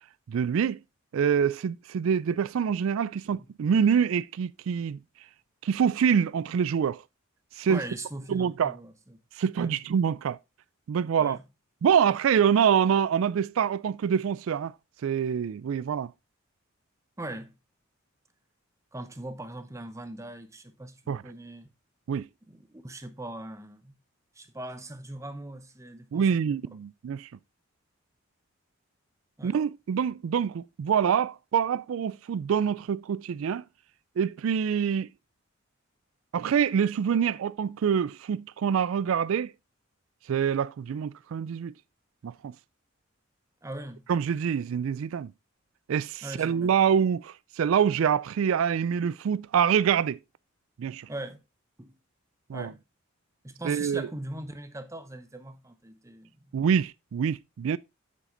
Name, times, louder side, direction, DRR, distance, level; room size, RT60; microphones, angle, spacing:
voice 1, 0.3-0.8 1.1-5.0 5.6-7.0 7.6-7.8 8.3-8.7 9.4-10.4 10.9-11.4 11.8-14.7 15.0-16.1 21.1-21.2 22.1-22.3 26.1-27.3 29.4-33.6 34.2-35.1 36.3-39.5 40.3-41.7 42.2-42.5 44.1-45.3 45.9-50.2 50.8-51.1 52.5-52.7 53.6-54.0 56.5-57.8, right 7 dB, 75° right, 0.3 m, -25 dB
voice 2, 7.7-9.2 9.6-9.8 11.2-11.4 17.2-17.6 18.9-21.7 22.5-24.0 24.3-26.6 29.4-29.6 43.6-44.1 46.2-46.8 51.1-51.4 51.8-52.0 52.5-52.8 53.4-56.5, right 1 dB, 15° right, 0.9 m, -40 dB
7.7 x 6.5 x 3.8 m
head